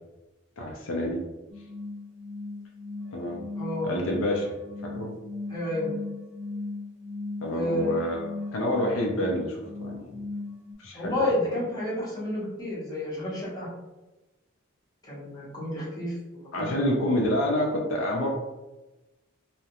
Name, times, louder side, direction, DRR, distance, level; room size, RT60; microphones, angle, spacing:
voice 1, 0.6-1.2 3.1-3.5 3.8-4.5 4.8-5.1 7.4-8.2 8.5-10.1 10.8-11.3 16.5-18.3, left 1 dB, 75° left, 0 dB, 0.5 m, -28 dB
sound 1, 1.5-10.7, left 3 dB, 65° right, 0.9 m, -38 dB
voice 2, 3.5-3.9 5.5-5.9 7.5-7.9 10.9-13.7 15.0-16.7, left 1 dB, 20° left, -8 dB, 0.9 m, -30 dB
2.4 x 2.1 x 2.8 m, 1.1 s
head